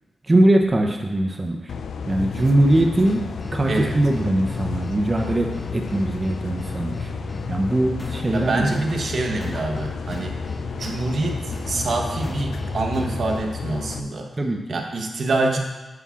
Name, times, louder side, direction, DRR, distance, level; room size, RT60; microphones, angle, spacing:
voice 1, 0.3-1.7 2.1-3.2 3.5-7.1 7.5-8.7 14.4-14.8, right 1 dB, 30° right, 2 dB, 0.7 m, -21 dB
sound 1, 1.7-14.0, left 6 dB, 80° left, 0.3 m, -32 dB
sound 2, 2.3-13.4, left 1 dB, 15° left, 0.8 m, -36 dB
voice 2, 3.7-4.0 8.3-10.4 10.7-14.3 14.7-15.6, right 2 dB, 65° right, 2 dB, 1.0 m, -25 dB
9.4 x 7.1 x 2.4 m, 1.1 s
cardioid pair, 70°, 0 cm